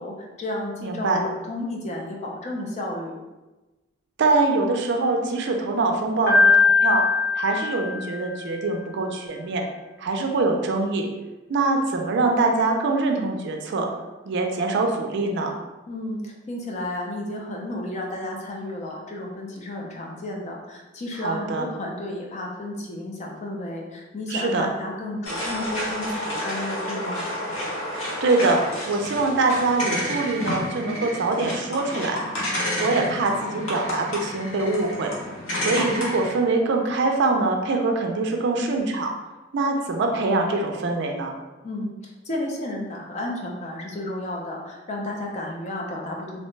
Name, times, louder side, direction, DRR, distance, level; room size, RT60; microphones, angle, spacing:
voice 1, 0.0-3.2 15.9-27.3 41.6-46.4, left 1 dB, 35° left, -1 dB, 0.5 m, -32 dB
voice 2, 0.8-1.2 4.2-7.0 7.4-9.6 10.0-11.1 11.5-13.9 14.3-15.5 21.2-21.7 24.3-24.7 28.2-28.6 28.9-32.2 32.8-35.1 35.6-39.1 39.5-41.3, right 3 dB, 60° right, 3 dB, 0.4 m, -23 dB
Piano, 6.3-8.4, left 3 dB, 60° left, 1.3 m, -20 dB
sound 1, 25.2-36.3, left 1 dB, 80° left, 0.9 m, -30 dB
2.8 x 2.1 x 3.1 m, 1.1 s
head